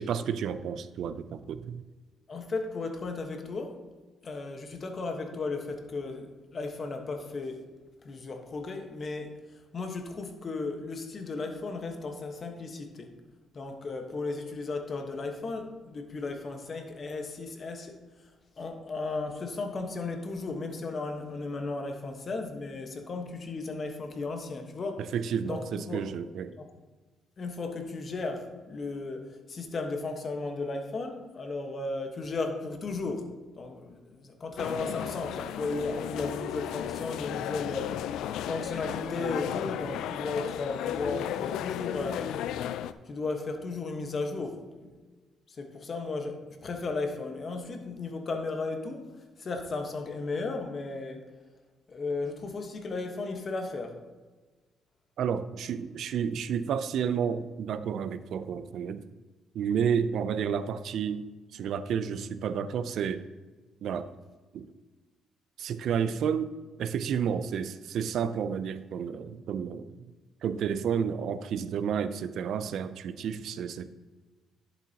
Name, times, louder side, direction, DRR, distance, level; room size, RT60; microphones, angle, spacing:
voice 1, 0.0-1.8 25.0-26.5 55.2-59.0 59.5-61.2 61.5-63.2 63.8-64.1 64.5-64.7 65.6-66.5 66.8-70.0 70.4-73.9, right 7 dB, 70° right, 12 dB, 0.5 m, -31 dB
voice 2, 2.3-3.8 4.2-7.6 8.0-9.4 9.7-13.1 13.5-18.0 18.6-25.0 25.4-26.0 26.6-26.7 27.4-33.3 33.6-42.3 43.1-44.9 45.5-49.1 49.4-51.2 51.9-54.0, left 3 dB, 40° left, 4 dB, 1.2 m, -35 dB
sound 1, 34.6-42.9, left 10 dB, 90° left, 0.3 m, -34 dB
10.5 x 7.7 x 2.9 m, 1.3 s
cardioid pair, 115°, 0 cm